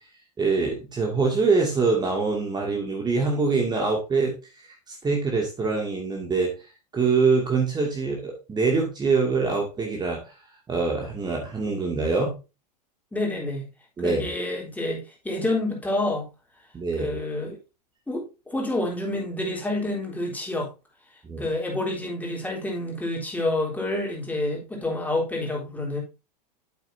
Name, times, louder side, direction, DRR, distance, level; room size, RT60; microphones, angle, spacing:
voice 1, 0.4-4.3 4.9-6.5 6.9-10.2 10.7-12.3 14.0-14.2 16.7-17.1 21.2-21.5, right 4 dB, 20° right, 2.3 m, -24 dB
voice 2, 13.1-13.7 14.0-16.2 17.0-17.6 18.1-20.7 21.4-26.0, left 2 dB, 10° left, 3.7 m, -28 dB
8.4 x 8.2 x 2.7 m
hypercardioid pair, 105°, 21 cm